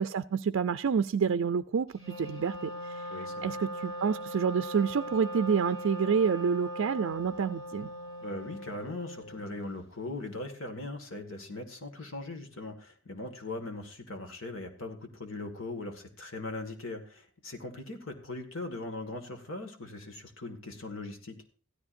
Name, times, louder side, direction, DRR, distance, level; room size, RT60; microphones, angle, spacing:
voice 1, 0.0-3.1 3.4-7.9, right 6 dB, 90° right, 0.4 m, -28 dB
Wind instrument woodwind instrument, 1.9-9.8, equal, 30° left, 4.0 m, -40 dB
voice 2, 3.1-3.5 8.2-21.4, left 2 dB, 85° left, 1.8 m, -40 dB
15.5 x 13.5 x 2.6 m
head